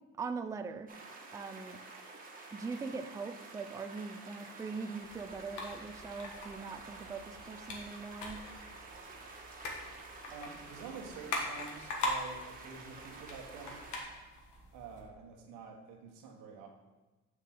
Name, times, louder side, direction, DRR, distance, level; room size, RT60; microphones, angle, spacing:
voice 1, 0.2-0.9 1.3-1.8 2.5-8.4 14.1-14.3, right 4 dB, 10° right, 8 dB, 0.3 m, -41 dB
sound 1, 0.9-14.0, right 3 dB, 25° right, 1.4 m, -50 dB
sound 2, 5.0-15.0, left 2 dB, 65° left, 1.5 m, -42 dB
voice 2, 10.3-13.8 14.7-16.7, right 5 dB, 90° right, 2 dB, 1.4 m, -48 dB
7.3 x 6.5 x 3.8 m, 1.1 s
cardioid pair, 115°, 31 cm